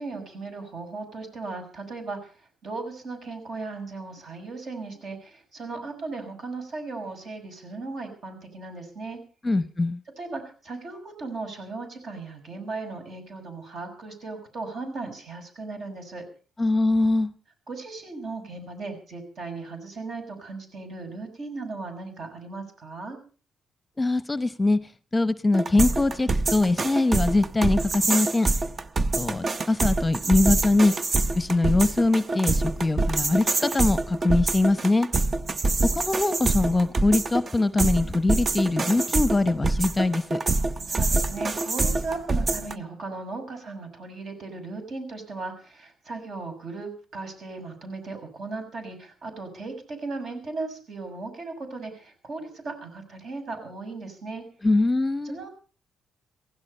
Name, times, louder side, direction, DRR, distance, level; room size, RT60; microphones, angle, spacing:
voice 1, 0.0-9.2 10.2-16.2 17.7-23.2 40.9-54.4 55.2-55.5, right 3 dB, 55° right, 6.6 m, -37 dB
voice 2, 9.4-10.0 16.6-17.3 24.0-24.8 25.1-28.5 29.1-30.9 31.3-35.1 35.9-40.4 54.6-55.4, left 2 dB, 20° left, 0.9 m, -22 dB
sound 1, 25.5-42.7, right 3 dB, 35° right, 0.8 m, -26 dB
16.5 x 16.0 x 5.5 m
cardioid pair, 90°, 0 cm